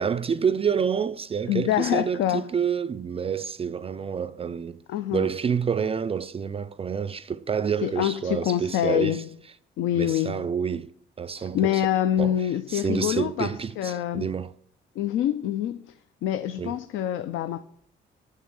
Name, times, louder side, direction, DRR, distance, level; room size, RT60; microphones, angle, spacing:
voice 1, 0.0-4.8 5.1-9.2 9.9-10.9 11.2-11.9 12.2-12.4 12.7-14.5 16.6-16.8, right 7 dB, 30° right, 0.3 m, -28 dB
voice 2, 1.5-2.5 4.9-5.3 7.8-9.2 9.8-10.4 11.4-13.5 13.8-14.3 15.0-15.8 16.2-17.6, left 11 dB, 80° left, 0.4 m, -26 dB
7.8 x 6.6 x 5.4 m
cardioid pair, 90°, 20 cm